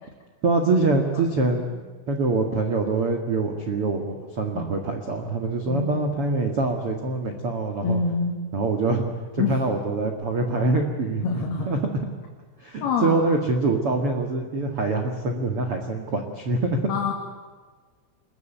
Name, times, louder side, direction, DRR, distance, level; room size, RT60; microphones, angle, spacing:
voice 1, 0.4-8.0 8.5-9.0 9.3-11.8 12.6-16.9, right 3 dB, 55° right, 4 dB, 1.5 m, -25 dB
voice 2, 5.7-6.0 7.8-8.5 9.4-9.6 11.2-11.8 12.8-13.3 16.9-17.1, left 4 dB, 55° left, 0 dB, 4.0 m, -26 dB
26.5 x 21.5 x 9.2 m, 1.4 s
omnidirectional pair, 5.8 m